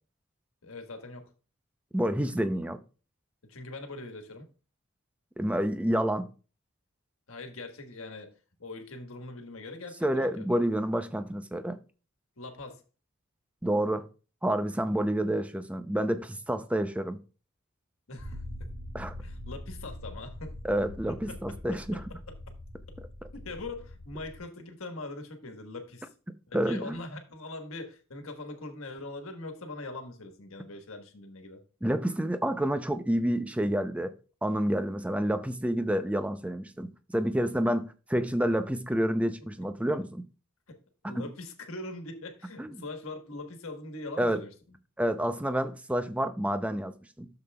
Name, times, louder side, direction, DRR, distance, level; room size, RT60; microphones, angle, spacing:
voice 1, 0.6-1.3 3.4-4.5 7.3-8.3 8.6-10.4 12.4-12.8 18.1-18.7 19.2-20.5 21.3-21.4 23.4-26.1 26.5-31.6 39.6-39.7 40.7-40.8 41.0-44.5, left 2 dB, 80° left, 1.4 m, -42 dB
voice 2, 1.9-2.8 5.4-6.3 10.0-11.8 13.6-14.1 14.4-17.2 18.9-19.1 20.6-22.0 26.5-27.0 31.8-34.1 34.4-40.2 41.1-41.3 42.6-42.8 44.2-44.4 45.0-47.3, right 1 dB, 5° right, 0.5 m, -29 dB
sound 1, 18.2-24.4, left 1 dB, 30° right, 3.2 m, -43 dB
12.0 x 6.9 x 2.3 m
head